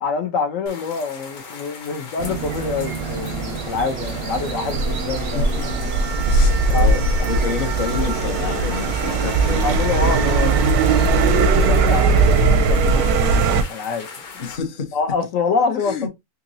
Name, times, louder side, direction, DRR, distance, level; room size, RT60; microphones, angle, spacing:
voice 1, 0.0-5.5 5.9-6.1 6.7-7.0 7.3-7.5 9.0-9.3 9.6-10.7 11.3-13.2 13.7-14.1 14.9-16.1, left 5 dB, 65° left, 1.0 m, -26 dB
sound 1, 0.7-14.6, left 5 dB, 85° left, 1.5 m, -38 dB
sound 2, 2.2-11.3, right 5 dB, 60° right, 0.7 m, -30 dB
sound 3, 4.7-13.6, right 3 dB, 85° right, 1.1 m, -18 dB
voice 2, 5.3-5.7 6.2-9.8 14.4-15.0 15.8-16.1, left 5 dB, 45° left, 0.8 m, -29 dB
3.8 x 2.9 x 2.6 m
omnidirectional pair, 1.6 m